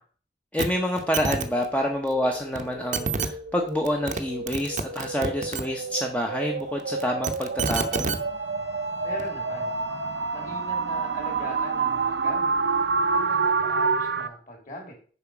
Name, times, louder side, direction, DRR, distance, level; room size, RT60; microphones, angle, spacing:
voice 1, 0.5-8.2, left 1 dB, 5° left, 1 dB, 0.7 m, -27 dB
sound 1, 0.6-0.7 1.0-1.5 2.6-2.7 2.9-3.3 3.9-4.2 4.5-5.6 7.0-8.2 9.2-9.3, right 4 dB, 40° right, 0.7 m, -27 dB
sound 2, 1.0-14.3, right 4 dB, 75° right, 0.7 m, -29 dB
Bowed string instrument, 7.5-12.4, left 1 dB, 85° left, 1.8 m, -49 dB
voice 2, 9.0-9.7 10.3-12.5 13.1-14.9, equal, 45° left, 1 dB, 3.0 m, -40 dB
7.0 x 4.9 x 6.0 m, 0.44 s
head